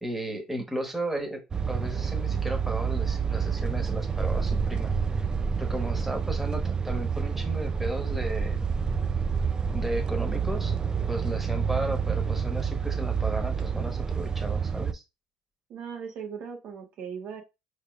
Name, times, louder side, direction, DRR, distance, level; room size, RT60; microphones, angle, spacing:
voice 1, 0.0-1.4 1.7-5.2 5.6-8.6 9.7-10.7 11.1-15.0, right 1 dB, 5° right, 3 dB, 1.2 m, -34 dB
sound 1, 1.5-14.9, right 6 dB, 30° right, 0.3 m, -28 dB
voice 2, 5.7-6.2 15.7-17.4, right 6 dB, 60° right, 2 dB, 1.0 m, -39 dB
4.6 x 3.3 x 2.4 m, 0.25 s
hypercardioid pair, 70°, 3 cm